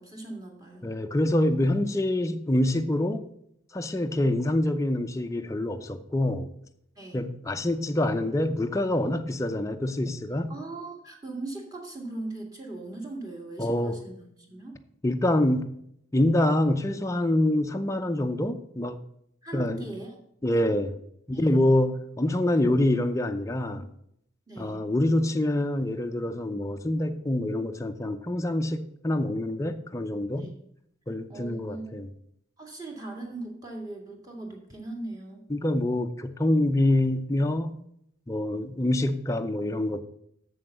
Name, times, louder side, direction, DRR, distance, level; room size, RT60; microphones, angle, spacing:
voice 1, 0.0-0.9 7.0-7.3 10.5-14.8 19.4-20.2 21.3-21.7 24.5-24.8 30.3-30.6 31.3-32.0 32.6-35.5, right 2 dB, 20° right, 2.1 m, -39 dB
voice 2, 0.8-3.2 3.7-6.5 7.1-10.5 13.6-14.0 15.0-15.7 16.1-19.0 19.5-19.9 20.4-21.0 21.3-23.9 24.6-30.5 31.1-32.1 35.5-37.7 38.3-40.0, left 1 dB, 15° left, 0.5 m, -26 dB
7.4 x 7.0 x 6.6 m
head